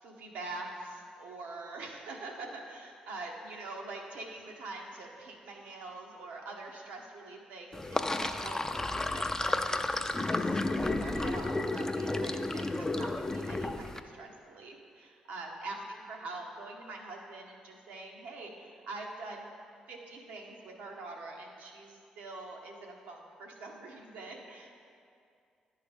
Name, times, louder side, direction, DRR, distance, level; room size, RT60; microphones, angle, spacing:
voice 1, 0.0-8.8 9.1-19.5 19.9-24.7, right 2 dB, 75° right, 0 dB, 0.9 m, -44 dB
Sink (filling or washing), 7.7-14.0, left 2 dB, 20° left, 0.4 m, -32 dB
10.5 x 3.7 x 3.6 m, 2.3 s
hypercardioid pair, 45°, 3 cm